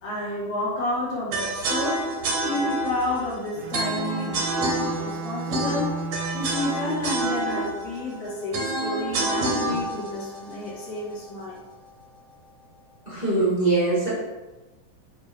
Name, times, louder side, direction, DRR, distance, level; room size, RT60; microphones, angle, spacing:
voice 1, 0.0-2.0 2.4-4.4 5.0-5.9 6.3-11.6, left 2 dB, 70° left, -6 dB, 3.5 m, -30 dB
sound 1, 1.3-11.4, right 2 dB, 60° right, 2.0 m, -28 dB
Bowed string instrument, 3.6-7.4, right 4 dB, 85° right, 2.4 m, -34 dB
voice 2, 13.1-14.1, right 3 dB, 30° right, -8 dB, 1.1 m, -22 dB
8.7 x 3.2 x 4.8 m, 1.1 s
omnidirectional pair, 4.3 m